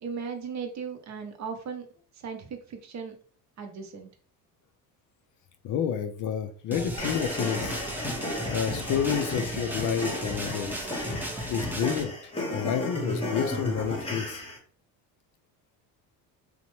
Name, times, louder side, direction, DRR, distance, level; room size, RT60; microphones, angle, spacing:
voice 1, 0.0-1.9 2.2-3.2 3.6-4.1, right 6 dB, 40° right, 5 dB, 0.7 m, -37 dB
voice 2, 5.6-7.8 8.4-11.0 11.5-12.1 12.5-14.4, left 8 dB, 50° left, 8 dB, 0.5 m, -29 dB
sound 1, 6.7-12.0, right 1 dB, 5° right, 0.4 m, -35 dB
sound 2, 7.0-14.6, left 1 dB, 15° left, 0.9 m, -33 dB
2.8 x 2.1 x 3.0 m, 0.43 s
supercardioid pair, 85°, 41 cm